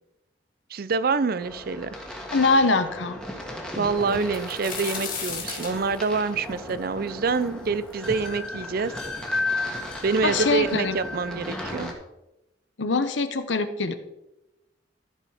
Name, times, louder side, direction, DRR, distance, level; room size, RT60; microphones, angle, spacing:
voice 1, 0.7-1.9 3.8-8.9 10.0-11.9, right 4 dB, 55° right, 16 dB, 0.5 m, -26 dB
sound 1, 1.4-11.9, left 2 dB, 5° left, 1.6 m, -34 dB
voice 2, 2.3-3.2 3.8-3.9 10.2-11.0 12.8-13.9, left 3 dB, 85° left, 10 dB, 0.9 m, -23 dB
sound 2, 4.1-7.9 8.4-8.5 9.3-9.4 9.6-10.3 11.2-11.3 11.7-11.9, left 6 dB, 50° left, 3.4 m, -36 dB
13.5 x 5.6 x 4.9 m, 0.96 s
head